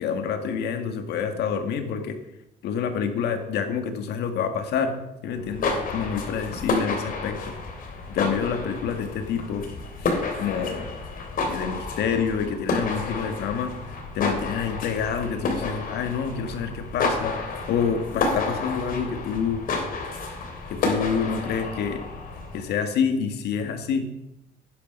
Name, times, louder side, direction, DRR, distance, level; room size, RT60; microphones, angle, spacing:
voice 1, 0.0-2.2 2.6-4.9 5.2-7.5 8.1-9.6 10.0-10.1 10.4-10.9 11.4-13.7 14.1-19.6 20.7-22.0 22.5-24.0, left 6 dB, 75° left, 6 dB, 2.0 m, -27 dB
sound 1, 5.4-22.7, left 3 dB, 55° left, 3.5 m, -30 dB
11.5 x 10.5 x 5.5 m, 0.88 s
cardioid pair, 110°, 17 cm